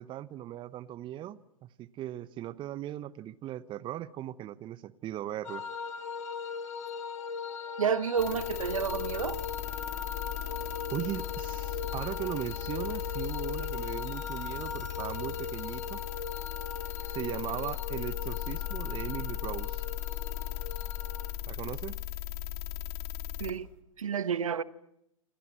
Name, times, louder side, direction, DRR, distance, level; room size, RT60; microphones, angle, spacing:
voice 1, 0.0-5.6 10.9-16.0 17.0-19.8 21.5-22.0, right 12 dB, 30° right, 1.0 m, -38 dB
sound 1, 5.4-21.3, left 5 dB, 70° left, 3.9 m, -39 dB
voice 2, 7.8-9.4 23.4-23.7 24.0-24.6, right 7 dB, 75° right, 1.2 m, -30 dB
sound 2, 8.2-23.5, left 13 dB, 45° left, 3.0 m, -37 dB
28.0 x 27.0 x 7.5 m
figure-of-eight pair, 100°, 18 cm